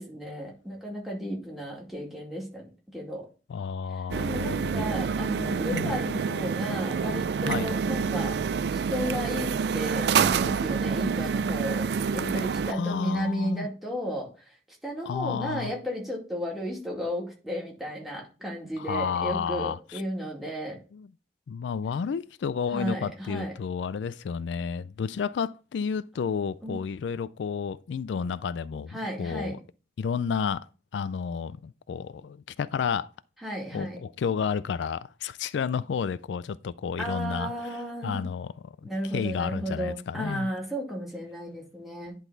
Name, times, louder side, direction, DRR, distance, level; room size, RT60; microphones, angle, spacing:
voice 1, 0.0-2.7 2.9-3.3 3.9-8.4 8.7-14.5 14.8-20.8 22.7-23.5 26.6-26.8 28.9-29.6 33.4-34.0 37.0-38.3 38.8-42.1, equal, ahead, 2.3 m, -34 dB
voice 2, 3.5-4.8 5.7-6.0 7.5-7.7 12.7-13.7 15.1-15.7 18.8-20.0 20.9-21.1 21.5-29.6 30.0-30.7 30.9-33.1 33.7-37.8 38.0-38.5 38.8-40.5, left 6 dB, 90° left, 0.3 m, -31 dB
sound 1, 4.1-12.7, right 6 dB, 70° right, 0.3 m, -27 dB
10.5 x 3.9 x 3.9 m
head